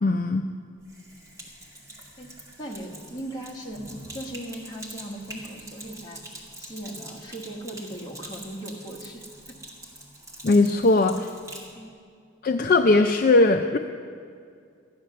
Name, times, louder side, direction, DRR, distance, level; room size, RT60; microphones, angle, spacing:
voice 1, 0.0-0.5 10.4-11.3 12.4-13.8, left 2 dB, 45° left, 6 dB, 0.4 m, -19 dB
Sink (filling or washing), 0.8-11.7, right 1 dB, 15° right, 2.2 m, -44 dB
voice 2, 2.6-3.8 4.1-6.2 6.6-9.5 11.7-11.9, right 1 dB, 20° left, -1 dB, 1.4 m, -38 dB
13.5 x 10.5 x 6.7 m, 2.2 s
head